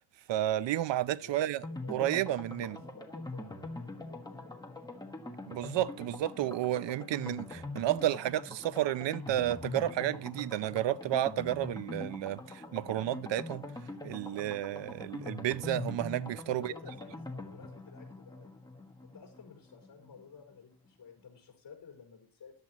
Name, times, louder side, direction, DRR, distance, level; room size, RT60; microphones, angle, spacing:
voice 1, 0.3-1.6 1.9-2.8 5.5-13.6 14.0-16.7, right 13 dB, 85° right, 0.6 m, -31 dB
voice 2, 1.2-2.1 2.6-4.7 16.5-18.7 19.0-22.5, left 6 dB, 55° left, 4.6 m, -53 dB
sound 1, 1.6-20.2 20.5-20.6 20.9-21.0, left 2 dB, 10° left, 1.4 m, -43 dB
14.5 x 10.5 x 3.0 m
wide cardioid pair, 165°, 43 cm